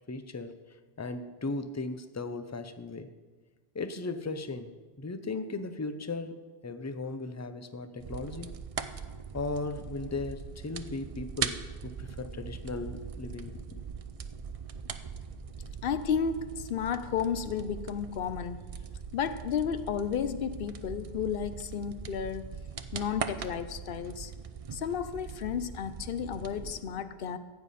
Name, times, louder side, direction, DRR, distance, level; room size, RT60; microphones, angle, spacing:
voice 1, 0.1-3.1 3.7-4.7 5.0-6.4 6.6-8.5 9.3-11.6 11.8-13.8, left 3 dB, 20° left, 10 dB, 0.5 m, -37 dB
sound 1, 8.0-26.8, right 6 dB, 45° right, 0.5 m, -41 dB
voice 2, 15.8-18.6 19.1-22.5 22.9-24.3 24.7-27.4, left 7 dB, 65° left, 13 dB, 0.8 m, -32 dB
15.0 x 9.2 x 4.2 m, 1.4 s
omnidirectional pair, 1.0 m